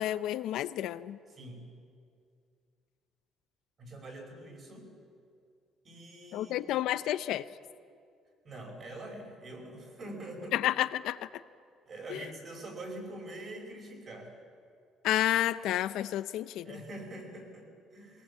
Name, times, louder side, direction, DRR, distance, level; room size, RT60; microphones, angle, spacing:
voice 1, 0.0-1.2 6.3-7.5 10.5-11.4 12.1-12.3 15.0-16.8, left 13 dB, 75° left, 13 dB, 0.7 m, -30 dB
voice 2, 1.3-1.7 3.8-4.9 5.8-6.5 8.4-10.6 11.9-14.3 16.6-18.2, right 1 dB, 35° right, 2 dB, 5.5 m, -44 dB
22.5 x 19.0 x 8.5 m, 2.3 s
cardioid pair, 140°, 0 cm